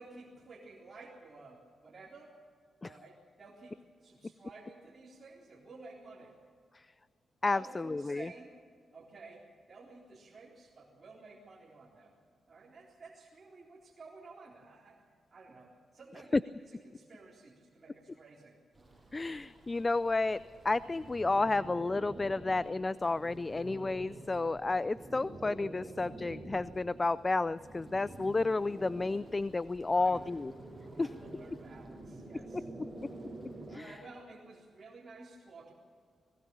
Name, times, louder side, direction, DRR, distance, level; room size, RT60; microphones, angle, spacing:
voice 1, 0.0-2.3 2.8-6.3 7.5-8.6 8.9-9.4 9.7-12.2 12.5-15.0 15.3-18.6 29.8-30.2 30.9-32.7 33.7-35.7, right 3 dB, 40° right, -5 dB, 3.8 m, -53 dB
voice 2, 7.4-8.3 16.3-16.4 19.1-20.4 20.6-30.5 31.0-31.1 33.7-33.9, left 3 dB, 30° left, 17 dB, 0.5 m, -31 dB
sound 1, 18.7-33.8, right 1 dB, 20° right, 7.2 m, -48 dB
19.5 x 18.5 x 7.1 m, 2.1 s
cardioid pair, 70°, 0 cm